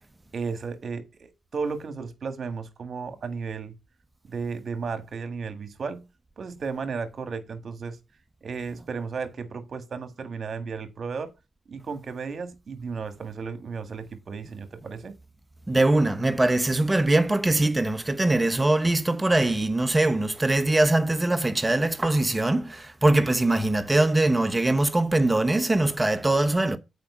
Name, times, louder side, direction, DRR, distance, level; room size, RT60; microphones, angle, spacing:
voice 1, 0.3-3.7 4.3-6.1 6.4-8.0 8.4-11.3 11.7-15.1, right 5 dB, 60° right, 1.5 m, -34 dB
voice 2, 15.7-26.8, right 2 dB, 20° right, 1.0 m, -22 dB
7.7 x 4.9 x 6.0 m
supercardioid pair, 45°, 0 cm